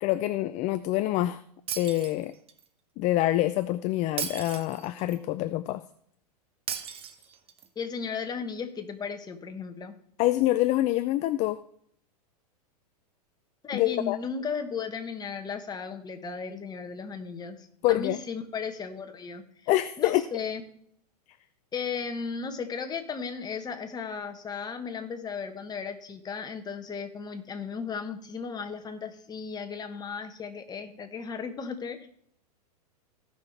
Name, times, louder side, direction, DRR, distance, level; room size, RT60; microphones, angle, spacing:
voice 1, 0.0-1.4 1.8-2.3 3.0-5.8 10.2-11.6 13.7-14.2 17.8-18.2 19.7-20.2, left 15 dB, 35° left, 13 dB, 0.4 m, -26 dB
Shatter, 1.7-2.6 4.2-5.2 6.7-7.7, right 8 dB, 30° right, 1.0 m, -36 dB
voice 2, 7.7-9.9 13.6-19.4 20.0-20.6 21.7-32.1, left 5 dB, 20° left, 6 dB, 1.3 m, -35 dB
16.0 x 5.8 x 3.4 m, 0.65 s
hypercardioid pair, 105°, 20 cm